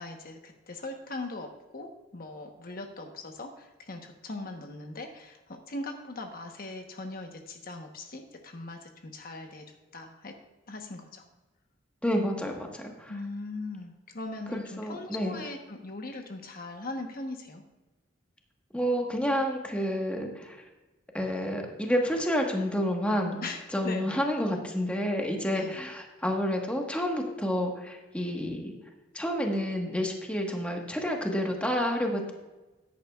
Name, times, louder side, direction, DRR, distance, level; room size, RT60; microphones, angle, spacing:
voice 1, 0.0-9.7 9.9-10.3 10.7-11.2 13.1-17.6 23.4-24.2 25.5-25.7, left 2 dB, 50° left, 4 dB, 1.1 m, -40 dB
voice 2, 12.0-13.1 14.5-15.3 18.7-20.6 21.1-23.4 23.7-28.7 29.1-32.3, equal, 5° left, 1 dB, 1.3 m, -29 dB
14.0 x 10.5 x 2.4 m, 1.1 s
head